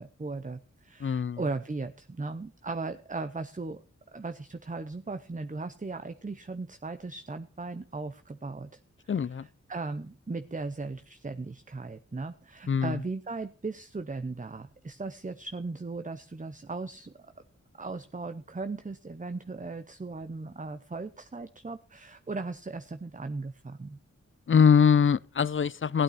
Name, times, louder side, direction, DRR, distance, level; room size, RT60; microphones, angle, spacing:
voice 1, 0.0-3.8 4.1-8.7 9.7-17.1 17.8-24.0, right 3 dB, 25° right, 0.7 m, -37 dB
voice 2, 1.0-1.4 9.1-9.5 12.7-13.0 24.5-26.0, left 6 dB, 40° left, 0.5 m, -23 dB
16.0 x 8.7 x 4.2 m
cardioid pair, 45°, 30 cm